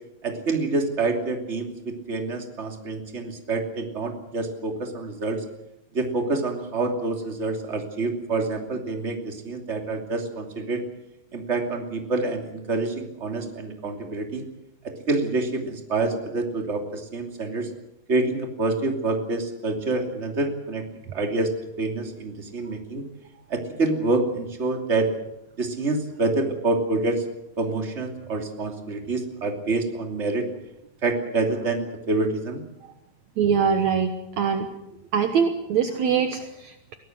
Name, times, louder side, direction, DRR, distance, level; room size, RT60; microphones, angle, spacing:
voice 1, 0.2-5.4 5.9-10.8 11.3-14.4 15.1-17.7 18.1-20.8 21.1-21.5 21.8-23.0 23.5-25.1 25.6-27.2 27.6-30.5 31.0-32.6, right 3 dB, 20° right, 3 dB, 2.7 m, -27 dB
voice 2, 33.4-34.7 35.1-37.0, right 7 dB, 65° right, 7 dB, 2.3 m, -23 dB
22.5 x 18.0 x 7.9 m, 0.88 s
omnidirectional pair, 4.0 m